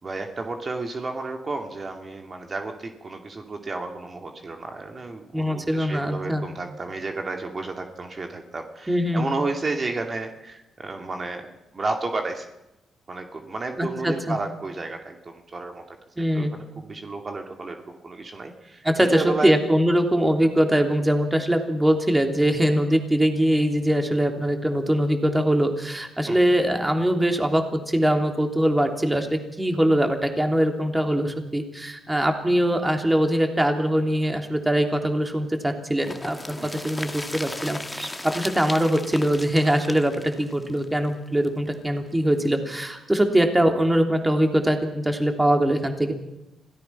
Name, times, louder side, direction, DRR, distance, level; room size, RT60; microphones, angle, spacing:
voice 1, 0.0-11.5 11.7-12.5 13.1-16.0 16.3-19.5 26.3-26.4 36.6-36.7, right 3 dB, 35° right, 4 dB, 2.6 m, -32 dB
voice 2, 5.3-6.4 8.9-9.3 13.8-14.4 16.2-16.6 18.8-46.1, right 1 dB, 10° right, 4 dB, 3.1 m, -22 dB
sound 1, 36.0-41.7 42.1-42.2 42.4-42.5, left 2 dB, 15° left, 1.6 m, -36 dB
26.0 x 17.5 x 5.9 m, 0.91 s
cardioid pair, 90°, 0 cm